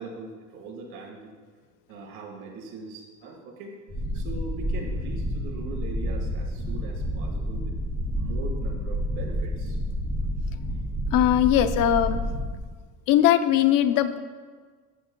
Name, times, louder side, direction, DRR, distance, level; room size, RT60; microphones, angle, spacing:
voice 1, 0.0-1.4 1.9-3.9 4.1-7.8 8.1-9.8, right 4 dB, 90° right, 0 dB, 1.9 m, -40 dB
sound 1, 3.9-12.6, equal, 10° left, 2.2 m, -29 dB
voice 2, 11.1-12.2 13.1-14.2, left 11 dB, 60° left, 11 dB, 0.6 m, -20 dB
14.5 x 8.6 x 2.2 m, 1.5 s
cardioid pair, 165°, 37 cm